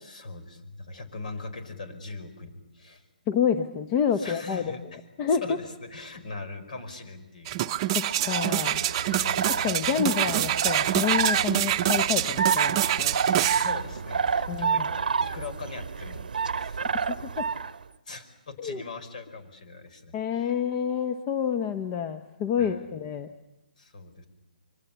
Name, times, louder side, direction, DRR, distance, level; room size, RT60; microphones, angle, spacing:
voice 1, 0.0-3.0 4.1-5.0 5.3-7.6 9.2-9.5 13.5-14.8 15.2-17.0 18.0-20.5 22.6-22.9 23.8-24.3, left 3 dB, 60° left, 10 dB, 5.1 m, -41 dB
voice 2, 3.3-4.6 5.2-5.4 7.9-8.8 9.5-13.2 14.5-14.9 17.1-17.4 18.6-18.8 20.1-23.3, left 8 dB, 25° left, 8 dB, 1.1 m, -28 dB
sound 1, 7.5-13.7 14.3-14.4, right 13 dB, 30° right, 0.8 m, -26 dB
sound 2, 8.0-17.8, right 6 dB, 75° right, 0.9 m, -29 dB
26.5 x 24.0 x 7.1 m, 1.0 s
hypercardioid pair, 145°, 5 cm